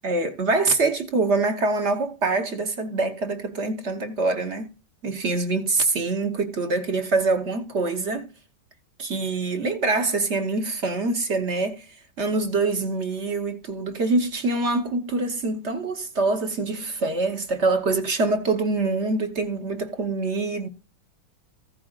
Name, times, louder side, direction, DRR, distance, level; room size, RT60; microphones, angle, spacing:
voice 1, 0.0-4.7 5.0-8.3 9.0-11.9 12.2-20.7, right 3 dB, 45° right, 0.9 m, -25 dB
15.5 x 8.7 x 2.4 m
omnidirectional pair, 2.3 m